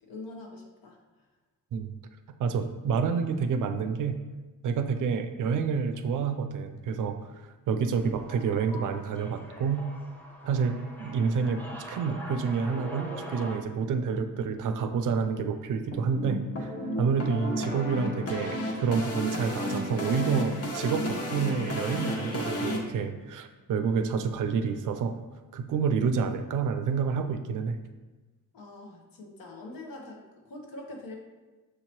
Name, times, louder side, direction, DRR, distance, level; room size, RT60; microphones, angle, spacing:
voice 1, 0.0-1.3 28.5-31.2, left 2 dB, 75° left, 1 dB, 1.0 m, -44 dB
voice 2, 2.4-4.2 4.6-7.2 7.7-9.9 10.4-16.7 17.0-25.1 25.5-27.8, right 5 dB, 60° right, 8 dB, 0.4 m, -28 dB
sound 1, 7.9-13.6, right 1 dB, 5° left, 0.8 m, -43 dB
sound 2, 15.9-22.8, equal, 45° left, 0.8 m, -32 dB
6.2 x 2.8 x 3.0 m, 1.2 s
cardioid pair, 90°, 35 cm